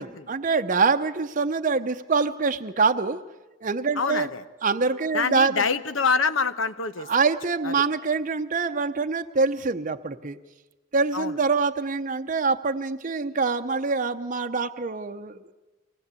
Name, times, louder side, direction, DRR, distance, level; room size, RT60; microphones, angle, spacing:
voice 1, 0.0-3.2 3.6-4.3 4.6-5.6 7.1-10.4 10.9-15.5, right 4 dB, 40° right, 7 dB, 0.7 m, -25 dB
voice 2, 4.0-4.4 5.1-7.1 7.6-7.7 11.1-11.4, left 5 dB, 80° left, 11 dB, 1.0 m, -26 dB
25.0 x 18.5 x 8.3 m, 1.2 s
head